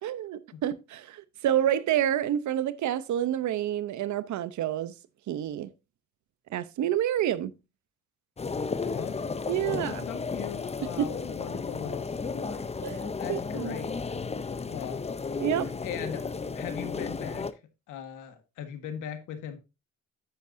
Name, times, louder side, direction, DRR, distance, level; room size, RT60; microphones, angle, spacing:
voice 1, 0.0-4.9 5.3-5.7 6.5-7.5 9.5-10.1 11.0-11.1 12.8-13.8 15.4-15.7, right 11 dB, 70° right, 0.8 m, -28 dB
sound 1, 8.4-17.5, left 4 dB, 20° left, 0.7 m, -34 dB
voice 2, 8.5-9.2 9.5-12.7 13.2-13.9 14.6-15.1 15.6-17.5 17.9-19.6, left 9 dB, 90° left, 1.7 m, -39 dB
10.0 x 8.1 x 2.7 m
cardioid pair, 90°, 30 cm